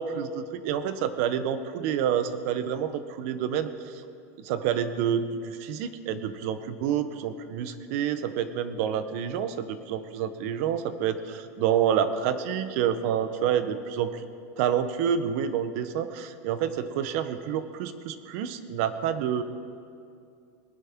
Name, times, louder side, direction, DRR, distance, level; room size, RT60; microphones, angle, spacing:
voice 1, 0.0-3.9 4.4-14.2 14.6-19.4, right 8 dB, 60° right, 11 dB, 0.9 m, -28 dB
19.5 x 10.5 x 3.7 m, 2.4 s
supercardioid pair, 145°, 9 cm